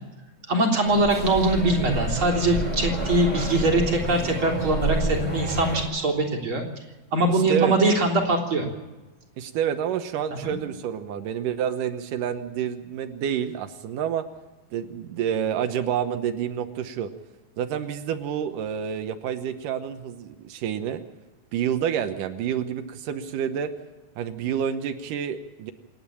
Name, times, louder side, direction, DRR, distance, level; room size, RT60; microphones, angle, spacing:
voice 1, 0.5-6.6 7.1-8.7 10.4-10.6, right 2 dB, 40° right, 0 dB, 4.3 m, -22 dB
sound 1, 0.9-5.8, right 2 dB, 10° right, 6.6 m, -29 dB
voice 2, 7.3-7.7 9.4-14.3 14.7-17.1 17.6-21.0 21.5-23.7 24.2-25.7, right 9 dB, 85° right, 8 dB, 2.6 m, -28 dB
27.5 x 11.0 x 8.7 m, 1.2 s
omnidirectional pair, 3.7 m